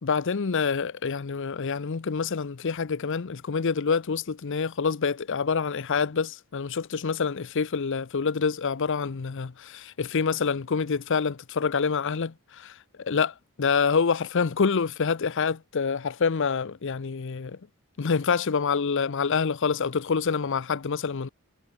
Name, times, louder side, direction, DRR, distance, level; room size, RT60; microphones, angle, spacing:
voice 1, 0.0-17.6 18.0-21.3, left 5 dB, 55° left, 0.6 m, -27 dB
head